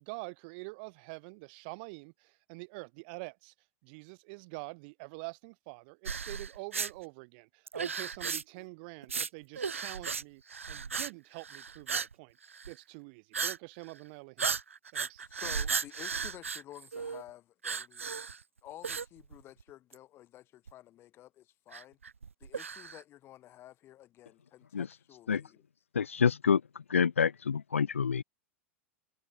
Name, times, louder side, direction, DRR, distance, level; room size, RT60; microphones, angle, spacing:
voice 1, 0.0-3.5 3.8-10.4 10.7-12.4 12.7-14.5 14.9-15.2, right 31 dB, 50° right, 1.5 m, -46 dB
sound 1, 6.1-6.9 7.7-8.6 9.0-9.3 9.6-10.2 10.5-11.1 11.4-12.1 12.4-12.7 13.3-13.6 13.9-14.0 14.4-17.2 17.6-18.4 18.8-19.6 19.9-20.0 20.7-20.8 21.7-23.0, right 5 dB, 80° right, 0.7 m, -35 dB
voice 2, 15.2-18.1 18.6-22.0 22.4-25.6, left 14 dB, 35° left, 1.6 m, -52 dB
voice 3, 25.9-26.6 26.9-28.2, left 6 dB, 80° left, 0.4 m, -27 dB
figure-of-eight pair, 90°, 7 cm